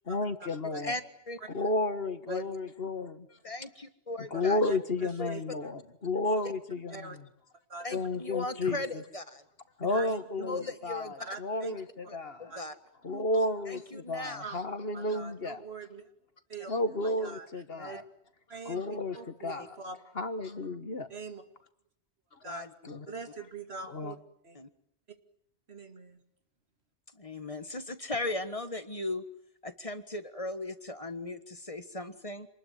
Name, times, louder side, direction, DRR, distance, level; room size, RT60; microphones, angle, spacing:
voice 1, 0.1-0.9 1.5-3.3 4.3-7.2 7.9-9.0 9.8-12.5 13.0-15.6 16.7-18.0 18.7-19.8 20.2-21.1 22.8-23.1 23.9-24.1, left 2 dB, 60° left, 10 dB, 1.9 m, -32 dB
voice 2, 3.4-4.6 5.2-5.3 7.8-9.4 10.5-11.1 12.1-12.7 13.3-14.4 17.8-18.0 22.4-22.7 23.1-23.2 24.5-24.7 27.1-29.2 29.6-32.5, left 2 dB, 30° left, 10 dB, 1.7 m, -38 dB
voice 3, 4.3-5.4 6.3-6.4 6.9-7.2 7.7-7.9 9.8-10.7 11.2-11.8 12.5-12.6 13.1-13.2 14.4-14.6 14.9-16.1 16.5-16.7 17.0-18.0 18.5-18.8 19.1-20.0 21.1-21.4 22.4-22.7 23.1-24.2 24.4-24.6 25.1-25.2 25.7-26.2, right 4 dB, 70° right, 7 dB, 2.6 m, -43 dB
27.0 x 20.5 x 9.4 m, 0.71 s
omnidirectional pair, 1.1 m